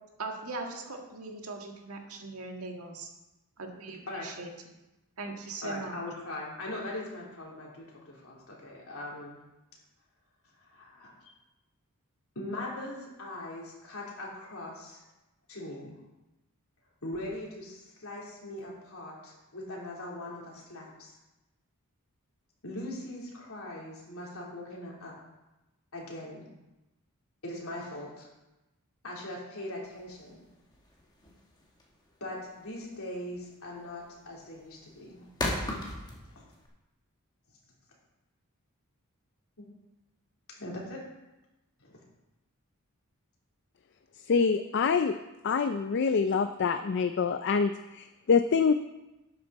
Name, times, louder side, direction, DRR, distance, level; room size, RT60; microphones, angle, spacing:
voice 1, 0.2-3.1 3.6-4.5 5.2-6.0, right 3 dB, 75° right, 2 dB, 1.7 m, -40 dB
voice 2, 5.6-9.4 10.6-11.3 12.3-15.0 15.5-15.9 17.0-21.1 22.6-25.1 25.9-26.5 27.4-28.3 29.0-30.4 32.2-35.2 36.3-36.4 39.6-39.7 40.6-41.0 41.8-42.0, left 1 dB, 70° left, -4 dB, 3.3 m, -40 dB
sound 1, 29.9-36.7, left 1 dB, 20° left, 1.8 m, -37 dB
voice 3, 44.3-45.1 45.4-48.7, left 5 dB, 50° left, 9 dB, 0.4 m, -26 dB
12.0 x 8.7 x 4.1 m, 1.0 s
head